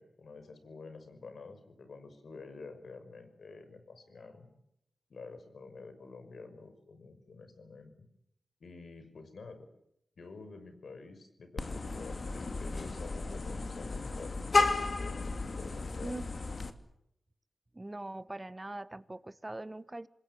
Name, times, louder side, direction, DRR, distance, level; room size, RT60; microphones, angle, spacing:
voice 1, 0.0-4.5 5.1-8.1 8.6-9.7 10.2-14.5 14.9-16.2, left 4 dB, 70° left, 5.9 m, -49 dB
Vehicle horn car horn honking, 11.6-16.7, left 3 dB, 45° left, 2.6 m, -33 dB
voice 2, 17.7-20.1, right 2 dB, 20° right, 1.3 m, -41 dB
27.0 x 21.0 x 8.5 m
wide cardioid pair, 80°, 0 cm